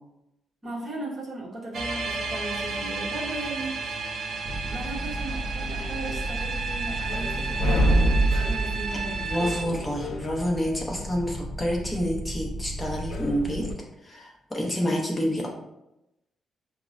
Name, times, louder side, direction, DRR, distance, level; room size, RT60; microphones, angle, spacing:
voice 1, 0.6-4.1 4.5-9.3, right 2 dB, 20° right, -5 dB, 0.9 m, -37 dB
sound 1, 1.7-9.7, right 4 dB, 50° right, 0.4 m, -32 dB
sound 2, 4.4-13.7, right 1 dB, 50° left, 0.4 m, -29 dB
voice 2, 8.9-13.7 14.0-15.5, equal, 10° left, -2 dB, 0.6 m, -28 dB
5.3 x 2.0 x 2.5 m, 0.90 s
cardioid pair, 170°, 0 cm